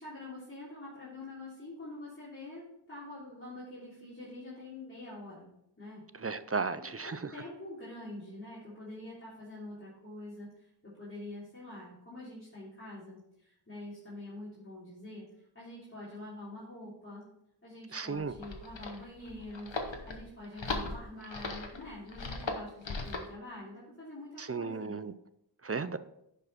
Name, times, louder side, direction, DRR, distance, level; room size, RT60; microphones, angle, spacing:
voice 1, 0.0-5.5 5.8-6.3 6.8-17.2 17.6-25.0, left 1 dB, 30° left, -10 dB, 3.3 m, -46 dB
voice 2, 6.2-7.3 17.9-18.3 24.4-25.1 25.6-26.0, right 4 dB, 35° right, 13 dB, 0.5 m, -35 dB
sound 1, 18.2-23.3, left 3 dB, 90° left, 1.2 m, -38 dB
10.5 x 5.4 x 4.2 m, 0.78 s
wide cardioid pair, 55°, 44 cm